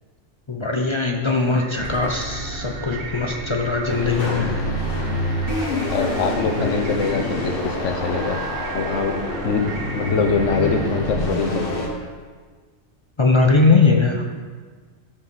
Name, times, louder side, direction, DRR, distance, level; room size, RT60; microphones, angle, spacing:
voice 1, 0.5-4.6 13.2-14.2, left 3 dB, 35° left, 2 dB, 0.5 m, -20 dB
sound 1, 1.5-11.1, right 4 dB, 90° right, 1.5 m, -38 dB
sound 2, 1.8-9.8, right 1 dB, 50° right, 2.5 m, -36 dB
sound 3, 3.9-11.9, left 1 dB, 50° left, 1.4 m, -27 dB
voice 2, 5.9-8.4 8.7-9.2 9.4-9.6 9.9-11.9, left 4 dB, 85° left, 4 dB, 1.3 m, -23 dB
13.0 x 5.5 x 4.1 m, 1.5 s
omnidirectional pair, 1.2 m